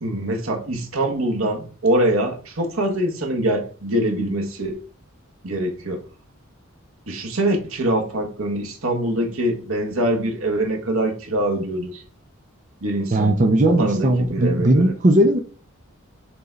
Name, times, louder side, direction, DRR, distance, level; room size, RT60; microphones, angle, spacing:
voice 1, 0.0-4.8 5.4-6.0 7.1-12.0 12.8-13.3 13.7-14.9, right 1 dB, 85° right, 1.4 m, -24 dB
voice 2, 13.1-15.4, right 1 dB, 35° right, 0.7 m, -17 dB
6.8 x 3.7 x 4.0 m
head